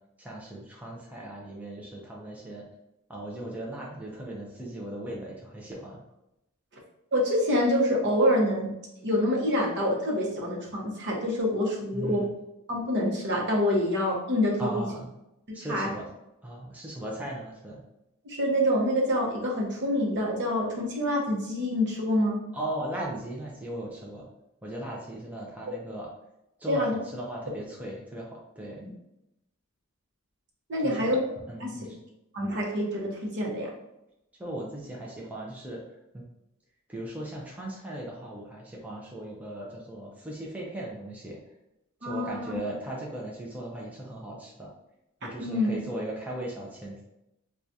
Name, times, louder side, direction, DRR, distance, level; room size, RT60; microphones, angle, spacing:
voice 1, 0.2-2.6 3.1-6.0 11.9-12.3 14.6-15.1 15.5-16.1 16.4-17.8 22.5-24.3 24.6-26.1 26.6-28.8 30.8-31.2 31.5-32.0 34.4-35.8 36.1-36.2 36.9-41.4 42.0-44.7 45.2-47.0, right 1 dB, 5° right, -3 dB, 0.5 m, -37 dB
voice 2, 7.1-8.7 9.0-12.2 12.7-14.9 15.7-15.9 18.2-22.4 26.7-27.0 28.8-28.9 30.7-31.2 31.6-31.7 32.3-33.7 42.0-42.6 45.4-45.7, left 1 dB, 55° right, -2 dB, 0.9 m, -26 dB
4.6 x 2.3 x 2.6 m, 0.87 s
head